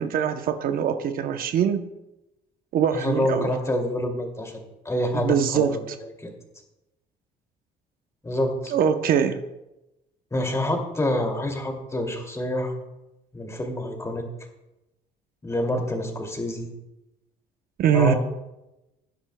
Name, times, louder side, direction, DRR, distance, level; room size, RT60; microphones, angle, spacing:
voice 1, 0.0-1.8 2.7-3.5 5.1-6.0 8.7-9.4 17.8-18.1, right 8 dB, 60° right, 8 dB, 0.8 m, -23 dB
voice 2, 2.9-5.8 6.2-6.3 8.2-8.7 10.3-12.7 13.3-14.2 15.4-16.7 17.9-18.2, left 1 dB, 15° left, 2 dB, 2.4 m, -27 dB
18.5 x 10.0 x 2.2 m, 0.95 s
cardioid pair, 110°, 17 cm